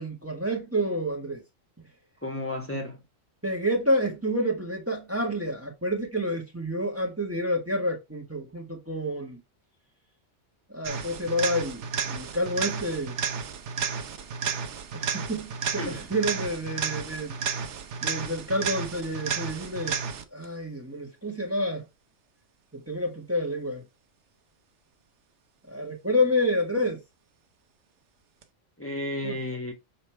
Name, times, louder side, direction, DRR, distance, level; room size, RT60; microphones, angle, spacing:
voice 1, 0.0-1.4 3.4-9.4 10.7-13.2 14.9-17.4 18.0-20.0 20.3-21.8 22.7-23.8 25.7-27.0 29.2-29.4, equal, 10° right, 1.6 m, -29 dB
voice 2, 2.2-3.0 15.8-16.0 28.8-29.7, left 1 dB, 10° left, 1.6 m, -32 dB
sound 1, 10.8-20.5 28.4-28.5, right 6 dB, 70° right, 1.1 m, -32 dB
6.7 x 3.3 x 4.4 m
omnidirectional pair, 1.3 m